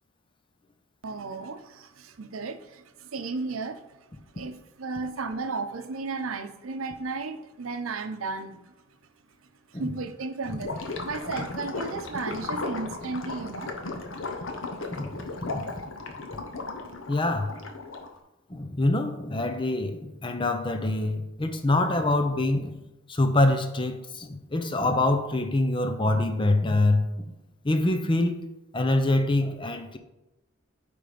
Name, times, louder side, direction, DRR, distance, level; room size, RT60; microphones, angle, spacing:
voice 1, 1.0-8.7 9.7-14.0, right 3 dB, 90° right, 0.6 m, -34 dB
Gurgling / Liquid, 10.4-18.2, left 3 dB, 65° left, 0.9 m, -35 dB
voice 2, 14.9-15.8 16.3-16.4 17.1-17.6 18.5-22.8 23.1-27.4 27.6-28.4 28.7-30.0, left 2 dB, 25° left, 0.6 m, -25 dB
9.0 x 3.5 x 5.1 m
head